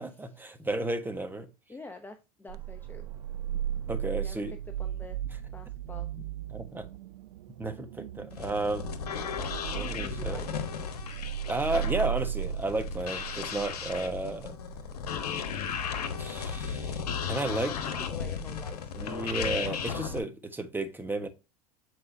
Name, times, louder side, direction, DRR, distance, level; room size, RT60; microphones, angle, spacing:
voice 1, 0.0-1.5 3.9-4.5 6.5-6.9 7.6-8.9 9.8-10.5 11.4-14.5 16.2-17.7 19.0-21.3, right 2 dB, 10° right, 1.3 m, -33 dB
voice 2, 1.7-3.1 3.5-6.3 10.0-10.6 17.4-19.1, left 3 dB, 10° left, 0.8 m, -47 dB
sound 1, 2.5-15.1, right 11 dB, 75° right, 0.5 m, -36 dB
sound 2, 8.3-20.2, left 7 dB, 75° left, 1.2 m, -35 dB
7.9 x 4.9 x 2.8 m
hypercardioid pair, 90°, 20 cm